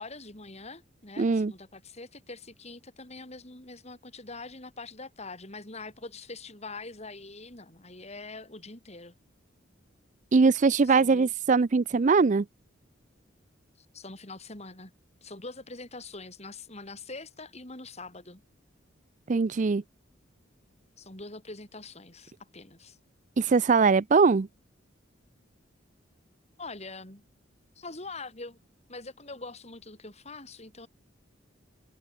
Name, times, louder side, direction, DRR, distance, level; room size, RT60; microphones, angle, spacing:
voice 1, 0.0-9.1 10.8-11.3 13.8-14.9 15.2-18.4 21.0-23.0 26.6-27.2 27.8-28.6 28.9-30.9, left 3 dB, 35° left, 5.5 m, -44 dB
voice 2, 1.2-1.5 10.3-12.5 19.3-19.8 23.4-24.5, right 4 dB, 40° right, 0.4 m, -21 dB
head